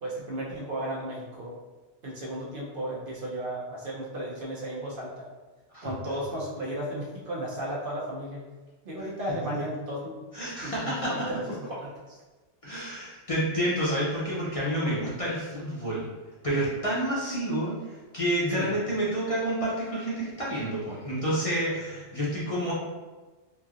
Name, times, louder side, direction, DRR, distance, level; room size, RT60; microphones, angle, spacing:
voice 1, 0.0-1.6 2.0-5.3 5.8-8.5 8.8-10.2 10.6-12.2 18.5-18.7, right 1 dB, 55° right, -5 dB, 0.8 m, -34 dB
voice 2, 10.3-11.3 12.6-16.1 16.4-22.7, right 1 dB, 35° left, -8 dB, 0.6 m, -29 dB
3.1 x 2.7 x 2.4 m, 1.2 s
omnidirectional pair, 1.2 m